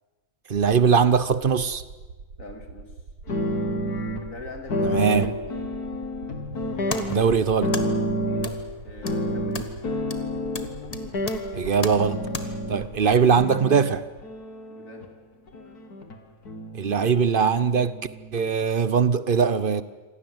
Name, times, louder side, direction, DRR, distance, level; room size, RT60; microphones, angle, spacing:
voice 1, 0.5-1.8 4.8-5.3 7.1-7.8 11.5-12.2 12.7-14.0 16.7-18.0 18.3-19.8, right 6 dB, 45° right, 0.8 m, -21 dB
sound 1, 1.4-13.5, right 4 dB, 85° right, 1.9 m, -43 dB
voice 2, 2.4-2.9 4.2-5.4 8.8-9.7 14.7-15.1, left 2 dB, 55° left, 3.1 m, -41 dB
sound 2, 3.3-4.2 4.7-8.7 9.0-12.9 13.4-15.1 15.5-16.2 16.5-18.7, equal, 80° left, 2.7 m, -30 dB
sound 3, 6.5-12.4, left 3 dB, 25° left, 1.4 m, -38 dB
26.5 x 18.0 x 8.0 m
omnidirectional pair, 1.6 m